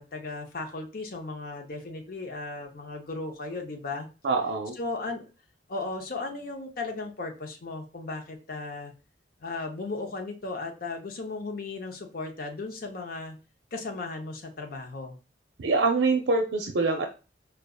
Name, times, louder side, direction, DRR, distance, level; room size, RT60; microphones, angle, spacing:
voice 1, 0.0-4.1 4.7-5.3 5.7-8.9 9.4-13.4 13.7-15.2, left 3 dB, 55° left, 3 dB, 0.7 m, -36 dB
voice 2, 4.2-4.7 15.6-17.1, right 3 dB, 85° right, 3 dB, 0.5 m, -24 dB
4.8 x 2.3 x 2.3 m, 0.31 s
head